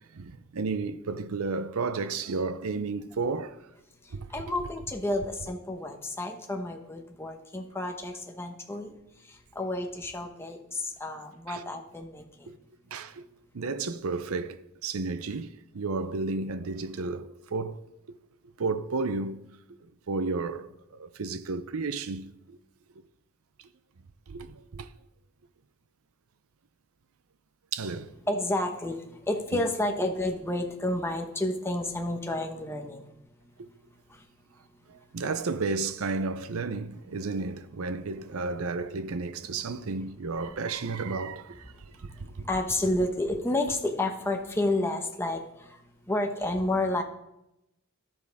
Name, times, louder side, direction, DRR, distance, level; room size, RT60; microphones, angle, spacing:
voice 1, 0.1-3.7 4.1-4.5 11.5-11.7 12.5-12.6 12.9-13.2 13.5-17.8 18.6-19.5 19.8-22.6 23.6-23.7 24.3-24.9 27.7-28.1 29.5-29.7 33.6-33.7 34.9-42.5, right 4 dB, 70° right, 0.6 m, -33 dB
voice 2, 4.0-8.9 9.2-12.5 28.3-33.1 34.1-34.2 42.1-45.8 46.1-47.0, left 1 dB, 10° left, 1.1 m, -30 dB
13.0 x 10.5 x 3.5 m
head